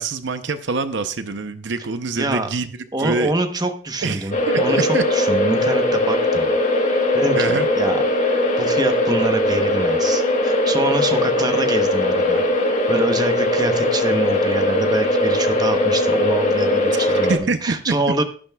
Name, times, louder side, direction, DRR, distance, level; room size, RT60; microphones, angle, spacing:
voice 1, 0.0-2.7 3.0-3.3 4.0-5.0 7.3-7.7 16.9-17.9, right 3 dB, 65° right, 10 dB, 0.7 m, -25 dB
voice 2, 2.2-2.5 2.9-6.5 6.9-12.4 12.9-18.2, right 2 dB, 20° right, 7 dB, 0.9 m, -25 dB
sound 1, 4.3-17.4, left 1 dB, 35° left, 1.6 m, -19 dB
12.5 x 11.5 x 2.3 m, 0.43 s
head